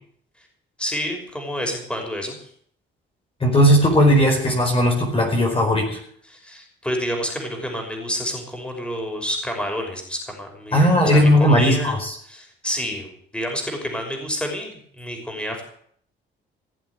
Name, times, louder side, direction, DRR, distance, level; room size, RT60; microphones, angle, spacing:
voice 1, 0.8-2.4 6.2-12.0 12.3-15.6, equal, 5° left, 2 dB, 5.7 m, -29 dB
voice 2, 3.4-6.0 10.7-12.1, equal, 30° left, 1 dB, 4.8 m, -17 dB
18.0 x 7.7 x 9.7 m, 0.63 s
cardioid pair, 90°, 20 cm